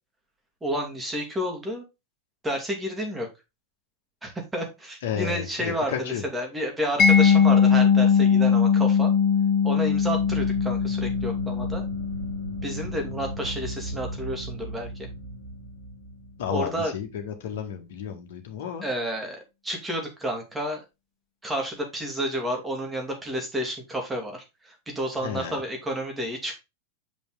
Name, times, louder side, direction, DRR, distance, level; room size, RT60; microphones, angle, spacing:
voice 1, 0.6-1.8 2.4-3.3 4.2-9.1 9.6-11.8 12.6-15.1 16.5-16.9 18.8-20.8 21.4-26.5, equal, 10° right, 2 dB, 2.6 m, -30 dB
voice 2, 5.0-6.2 16.4-18.9 25.2-25.6, left 8 dB, 55° left, 3 dB, 1.9 m, -32 dB
Mallet percussion, 7.0-13.8, left 6 dB, 30° left, 2.1 m, -21 dB
sound 1, 9.8-17.1, right 3 dB, 80° right, 2.4 m, -37 dB
7.4 x 5.3 x 3.8 m, 0.24 s
figure-of-eight pair, 90°, 0 cm